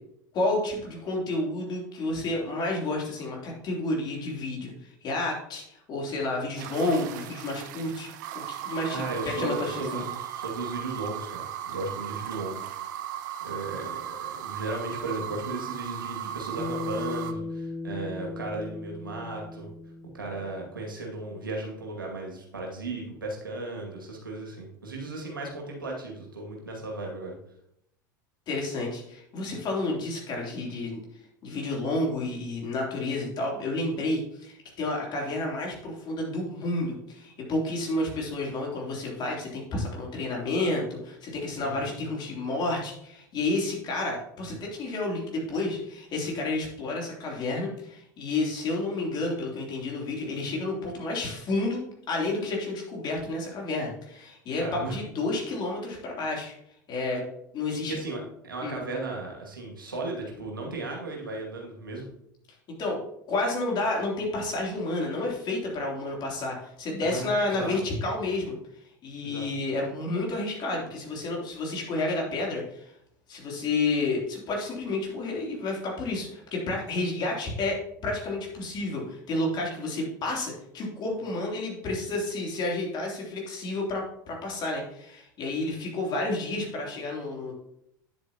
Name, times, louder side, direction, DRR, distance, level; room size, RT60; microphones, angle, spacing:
voice 1, 0.3-8.1 8.3-10.0 28.5-31.0 31.4-51.8 52.1-56.5 56.9-57.2 57.5-58.0 58.6-58.8 62.8-63.0 63.3-68.6 69.0-72.9 73.3-77.8 78.0-87.5, left 2 dB, 40° left, -1 dB, 3.2 m, -30 dB
sound 1, 6.6-17.3, right 11 dB, 65° right, 0.7 m, -37 dB
voice 2, 8.9-12.6 13.0-13.1 13.4-19.7 20.1-27.4 41.6-42.0 54.6-54.9 57.7-62.1 67.0-67.8 69.2-69.5, right 2 dB, 90° right, -1 dB, 2.2 m, -35 dB
Bass guitar, 16.6-21.0, left 3 dB, 5° left, 0.9 m, -37 dB
9.5 x 8.0 x 2.9 m, 0.75 s
hypercardioid pair, 80°, 11 cm